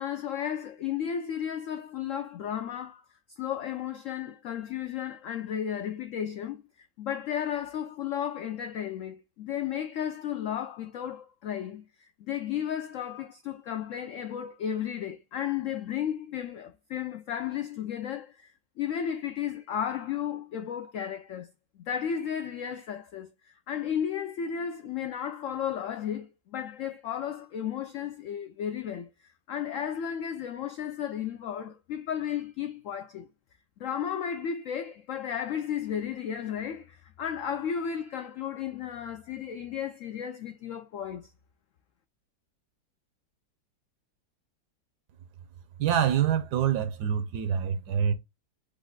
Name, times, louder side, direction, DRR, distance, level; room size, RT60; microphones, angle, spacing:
voice 1, 0.0-3.0 3.4-21.5 21.9-33.3 33.8-41.3, left 9 dB, 85° left, 0.7 m, -34 dB
voice 2, 45.8-48.1, right 8 dB, 70° right, 1.1 m, -26 dB
5.0 x 2.5 x 3.7 m
omnidirectional pair, 1.9 m